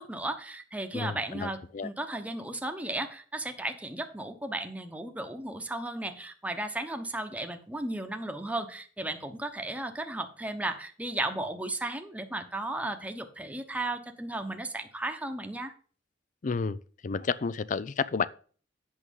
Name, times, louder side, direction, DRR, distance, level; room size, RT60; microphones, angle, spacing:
voice 1, 0.0-15.7, right 2 dB, 10° right, 1.0 m, -35 dB
voice 2, 0.9-1.9 16.4-16.8 17.0-18.3, left 5 dB, 45° left, 0.4 m, -31 dB
8.6 x 6.3 x 5.3 m
head